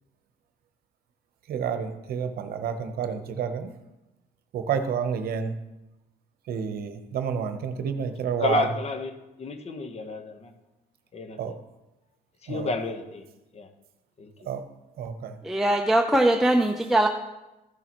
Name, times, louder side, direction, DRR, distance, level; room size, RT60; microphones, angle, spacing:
voice 1, 1.5-3.7 4.5-5.6 6.5-8.7 11.4-11.5 12.5-12.7 14.5-14.6 15.0-15.4, right 7 dB, 65° right, 0.9 m, -29 dB
voice 2, 8.4-9.1 9.4-10.5 11.1-11.4 12.4-13.2 13.5-13.7 14.2-14.3, left 3 dB, 40° left, 1.1 m, -30 dB
voice 3, 15.4-17.1, right 1 dB, ahead, 0.6 m, -21 dB
14.5 x 6.8 x 3.0 m
cardioid pair, 110°, 17 cm